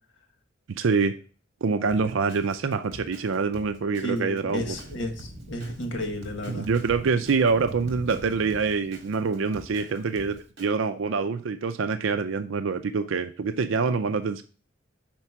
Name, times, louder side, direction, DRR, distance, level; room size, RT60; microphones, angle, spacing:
voice 1, 0.7-1.2 1.6-4.8 6.5-14.4, right 5 dB, 85° right, 10 dB, 0.5 m, -25 dB
Drum kit, 1.9-10.7, equal, 60° right, 1.8 m, -47 dB
voice 2, 4.0-6.7, left 1 dB, 70° left, 5 dB, 1.5 m, -32 dB
Thunder, 4.7-10.4, right 1 dB, 35° right, 0.6 m, -43 dB
6.0 x 4.3 x 5.6 m, 0.37 s
head